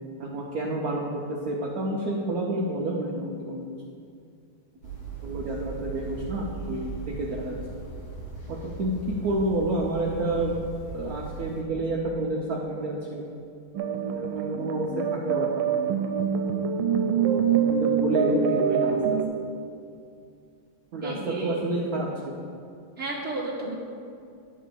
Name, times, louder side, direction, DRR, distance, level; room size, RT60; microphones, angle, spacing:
voice 1, 0.2-3.7 5.2-7.5 8.5-8.9 9.2-10.6 10.9-13.3 14.1-16.0 17.1-19.0 20.9-22.5, right 2 dB, 60° right, -3 dB, 1.0 m, -29 dB
sound 1, 4.8-11.6, right 4 dB, 50° left, 2.1 m, -38 dB
sound 2, 13.7-19.3, right 7 dB, 90° right, 1.4 m, -25 dB
voice 2, 21.0-21.7 23.0-23.7, right 2 dB, 5° right, -5 dB, 1.0 m, -32 dB
10.0 x 3.8 x 6.8 m, 2.4 s
omnidirectional pair, 2.2 m